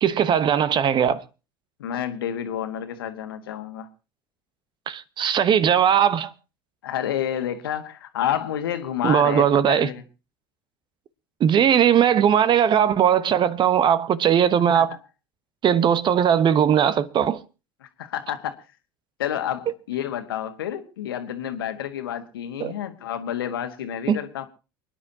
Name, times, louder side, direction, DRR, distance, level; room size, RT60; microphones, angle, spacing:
voice 1, 0.0-1.2 4.9-6.3 9.0-9.9 11.4-15.0 15.6-17.4 22.6-22.7 24.1-24.2, right 9 dB, 40° right, 1.1 m, -19 dB
voice 2, 1.8-3.9 6.8-10.0 14.7-14.8 17.8-18.6 19.2-24.5, left 10 dB, 80° left, 1.6 m, -29 dB
28.5 x 10.0 x 2.9 m
hypercardioid pair, 75°, 12 cm